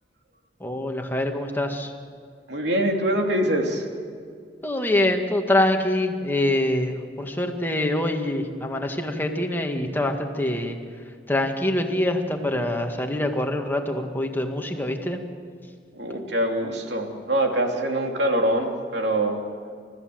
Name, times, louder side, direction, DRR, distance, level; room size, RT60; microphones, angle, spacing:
voice 1, 0.6-1.9 4.6-10.8 11.3-15.2, left 1 dB, 10° left, 3 dB, 1.9 m, -25 dB
voice 2, 2.5-3.9 15.9-19.4, right 1 dB, 75° right, 2 dB, 3.0 m, -24 dB
30.0 x 14.0 x 7.9 m, 2.2 s
head